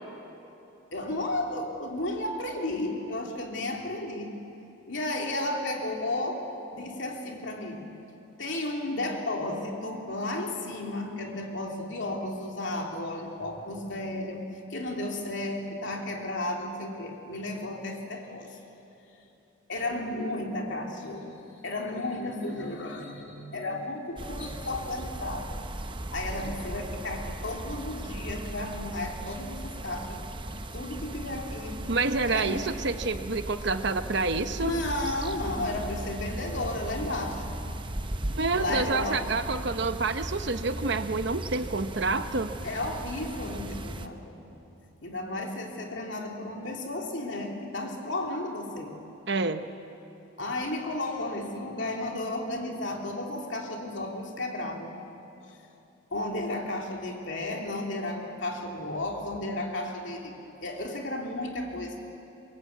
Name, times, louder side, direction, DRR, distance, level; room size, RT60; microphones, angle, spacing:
voice 1, 0.9-4.4 4.9-7.9 8.4-18.6 19.7-21.4 21.6-25.6 26.1-30.2 30.7-31.8 32.3-32.8 34.6-37.6 38.5-39.4 42.6-44.4 45.0-49.0 50.4-55.0 55.5-55.6 56.1-60.4 60.6-62.0, left 1 dB, 60° left, 1 dB, 3.1 m, -33 dB
sound 1, 24.2-44.1, right 1 dB, 25° right, 0.8 m, -37 dB
voice 2, 31.9-34.7 38.3-42.5 49.3-49.7, right 3 dB, 55° right, 9 dB, 1.0 m, -28 dB
26.0 x 22.5 x 8.3 m, 3.0 s
head